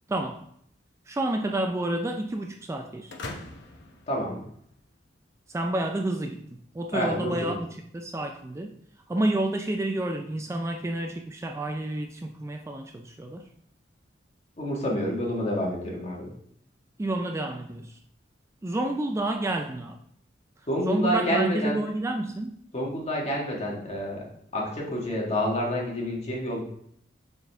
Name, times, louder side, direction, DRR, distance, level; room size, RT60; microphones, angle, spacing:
voice 1, 0.1-0.4 1.1-3.1 5.5-6.4 6.7-8.7 9.1-13.4 17.0-18.0 18.6-20.0 20.9-22.5, right 1 dB, 15° right, 4 dB, 0.3 m, -29 dB
sound 1, 3.1-5.0, left 2 dB, 65° left, 0.9 m, -42 dB
voice 2, 4.1-4.4 6.9-7.5 14.6-16.3 20.7-21.8 22.7-24.2 24.5-26.6, equal, 35° left, -2 dB, 1.5 m, -28 dB
6.9 x 4.1 x 3.3 m, 0.68 s
head